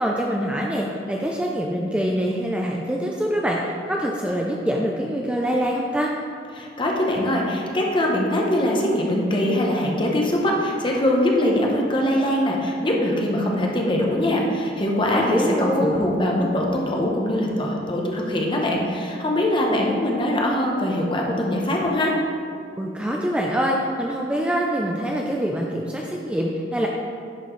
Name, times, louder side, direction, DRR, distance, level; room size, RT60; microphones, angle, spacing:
voice 1, 0.0-6.1 15.1-16.0 22.8-26.9, equal, 5° right, -1 dB, 0.4 m, -24 dB
voice 2, 6.5-22.1, left 1 dB, 30° left, -1 dB, 0.9 m, -22 dB
10.5 x 4.3 x 3.1 m, 2.4 s
head